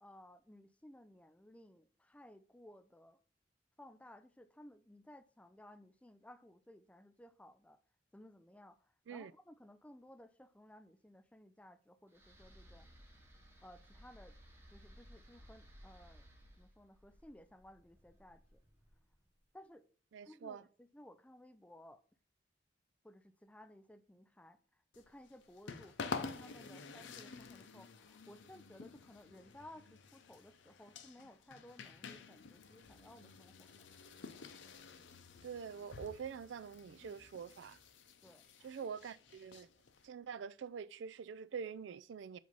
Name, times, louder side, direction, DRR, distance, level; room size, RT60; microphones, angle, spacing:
voice 1, 0.0-3.2 3.8-7.8 8.1-8.8 9.1-12.9 13.6-14.4 14.7-16.3 16.6-18.6 19.5-19.9 20.3-22.0 23.0-24.6 25.0-33.9 37.0-37.1 38.2-38.7, left 1 dB, 5° left, 0.4 m, -58 dB
sound 1, 12.1-19.3, equal, 15° right, 1.0 m, -60 dB
voice 2, 20.1-20.7 35.4-37.8 38.6-39.7 40.0-42.4, right 6 dB, 85° right, 0.4 m, -45 dB
sound 2, 24.9-40.1, left 4 dB, 90° left, 0.6 m, -50 dB
7.6 x 2.7 x 5.2 m
head